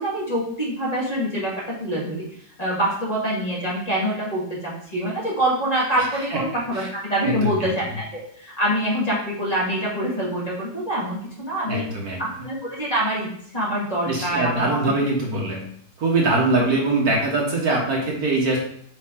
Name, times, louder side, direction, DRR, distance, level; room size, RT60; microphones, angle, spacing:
voice 1, 0.0-2.2 2.6-11.9 12.2-13.3 13.5-14.9, right 1 dB, 20° left, -6 dB, 1.9 m, -25 dB
voice 2, 7.2-7.7 11.7-12.2 14.1-15.6 16.0-18.6, right 2 dB, 60° right, -1 dB, 1.7 m, -22 dB
7.6 x 3.7 x 3.7 m, 0.64 s
omnidirectional pair, 1.9 m